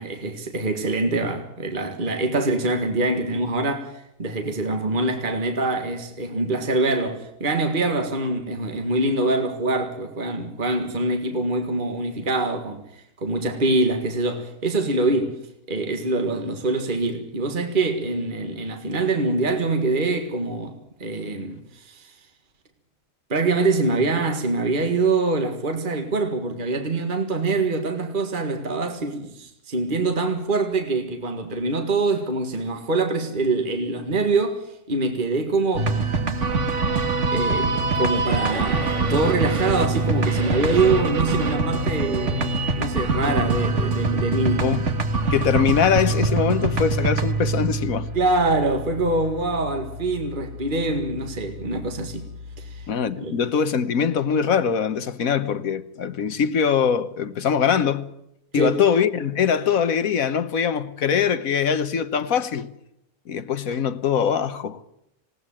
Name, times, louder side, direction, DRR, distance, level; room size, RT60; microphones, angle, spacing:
voice 1, 0.0-15.4 15.7-22.2 23.3-36.0 37.3-44.8 48.1-52.3 52.6-52.9 53.2-53.3 58.5-58.7, right 2 dB, 35° right, 2.0 m, -24 dB
sound 1, 35.8-52.9, right 3 dB, 55° right, 2.0 m, -25 dB
voice 2, 45.3-48.1 52.9-58.1 58.5-62.7 63.3-64.8, left 7 dB, 70° left, 1.5 m, -22 dB
20.0 x 17.5 x 8.8 m
omnidirectional pair, 1.5 m